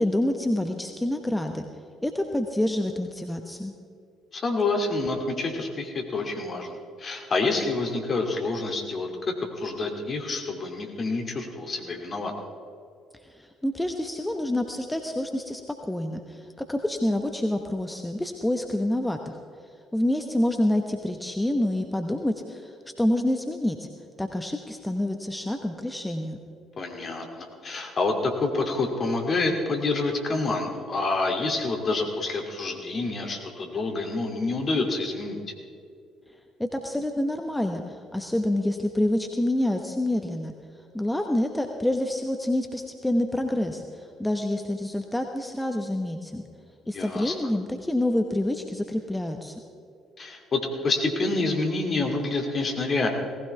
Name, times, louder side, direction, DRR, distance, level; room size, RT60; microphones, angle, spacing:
voice 1, 0.0-1.6 2.0-3.7 13.3-15.6 15.9-19.4 19.9-22.7 23.0-23.9 24.2-26.4 36.6-40.5 40.9-46.4 46.9-49.5, left 1 dB, 10° left, 5 dB, 1.1 m, -27 dB
voice 2, 4.3-12.3 26.8-35.4 46.9-47.3 50.2-53.1, left 3 dB, 40° left, 2 dB, 2.6 m, -28 dB
18.0 x 16.0 x 3.4 m, 2.4 s
figure-of-eight pair, 50°, 0 cm